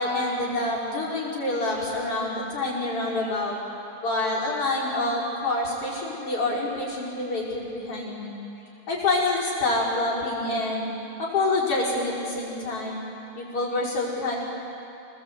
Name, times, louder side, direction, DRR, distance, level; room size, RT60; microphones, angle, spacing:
voice 1, 0.0-3.6 4.0-8.4 8.9-10.9 11.2-13.0 13.4-14.4, left 2 dB, 45° left, -5 dB, 6.0 m, -27 dB
26.0 x 20.0 x 8.2 m, 2.9 s
omnidirectional pair, 3.6 m